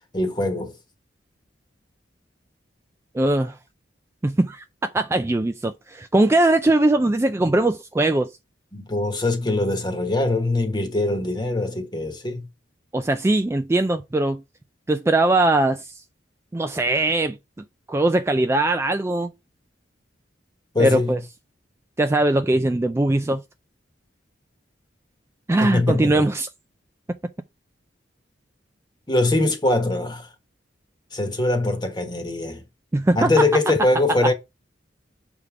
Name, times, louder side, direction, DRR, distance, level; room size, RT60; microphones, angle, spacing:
voice 1, 0.1-0.7 8.7-12.5 20.7-21.2 25.6-26.3 29.1-30.3 31.1-32.6 33.2-34.3, left 2 dB, 25° left, 1.2 m, -22 dB
voice 2, 3.1-3.6 4.2-4.6 4.9-8.3 12.9-14.4 14.9-15.9 16.5-19.3 20.8-21.2 22.0-23.4 25.5-26.5 32.9-33.4, right 2 dB, 15° right, 0.3 m, -20 dB
6.6 x 3.6 x 4.9 m
head